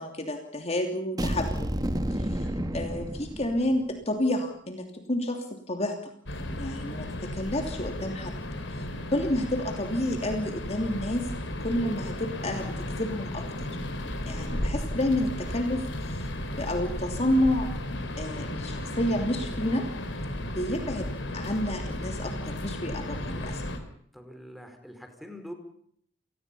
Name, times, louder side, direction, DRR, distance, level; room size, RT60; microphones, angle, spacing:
voice 1, 0.0-1.7 2.1-2.5 2.7-6.1 6.5-8.3 8.7-8.8 9.1-11.3 11.6-13.8 14.2-19.9 20.4-21.1 21.3-23.6, left 1 dB, 35° left, 4 dB, 3.0 m, -30 dB
sound 1, 1.2-3.9, right 1 dB, 20° right, 1.6 m, -30 dB
voice 2, 2.4-2.8 24.1-25.5, equal, ahead, 5 dB, 5.1 m, -44 dB
sound 2, 6.3-23.8, left 1 dB, 75° left, 4.6 m, -34 dB
29.5 x 19.5 x 5.6 m, 0.64 s
head